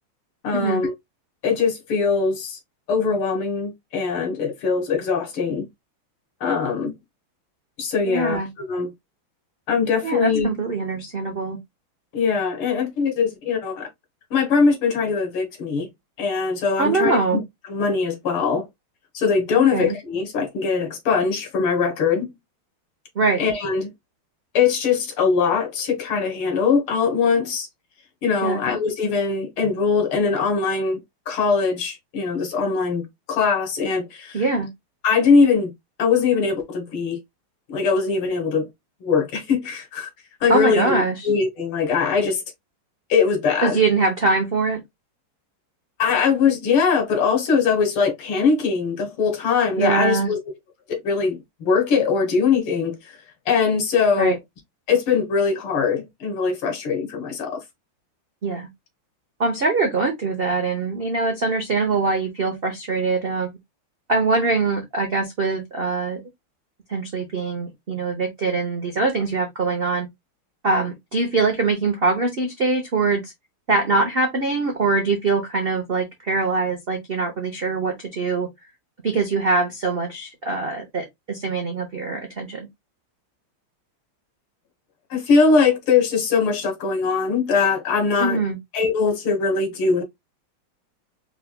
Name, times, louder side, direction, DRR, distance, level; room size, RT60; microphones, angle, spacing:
voice 1, 0.4-0.9 1.4-2.6 2.9-5.7 6.4-7.0 7.8-8.9 9.7-10.5 12.1-13.9 14.3-15.9 16.2-17.4 17.7-18.7 19.1-22.3 23.4-23.9 24.5-27.7 28.2-31.0 31.3-33.0 33.3-34.4 35.0-35.7 36.0-37.2 37.7-38.7 39.0-40.1 40.4-42.4 43.1-43.8 46.0-50.4 50.9-52.9 53.5-54.4 54.9-57.6 85.1-88.4 88.7-90.0, left 5 dB, 80° left, 2.2 m, -21 dB
voice 2, 8.0-8.5 10.0-11.6 16.8-17.4 19.5-20.0 23.2-23.4 28.4-28.6 34.3-34.7 40.5-41.3 43.6-44.8 49.8-50.3 54.2-54.4 58.4-58.7 59.4-63.5 64.1-66.2 66.9-70.1 70.6-73.3 73.7-78.5 79.0-82.7 88.2-88.6, right 3 dB, 65° right, 0.5 m, -23 dB
4.7 x 3.5 x 2.2 m
omnidirectional pair, 2.3 m